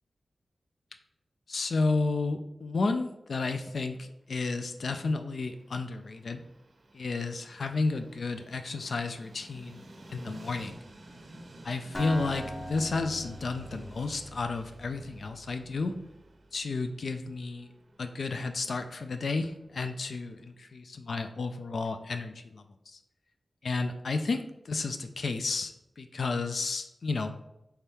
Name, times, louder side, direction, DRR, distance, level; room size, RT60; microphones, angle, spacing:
voice 1, 1.5-6.4 6.9-10.8 11.6-16.0 16.5-17.7 18.0-23.0 23.6-27.3, left 3 dB, 70° left, 7 dB, 0.4 m, -32 dB
Train, 4.5-20.5, right 1 dB, 55° right, 0.5 m, -53 dB
Acoustic guitar, 11.9-15.8, equal, 25° left, 0.9 m, -41 dB
4.2 x 3.5 x 3.5 m, 0.85 s
wide cardioid pair, 105°, 0 cm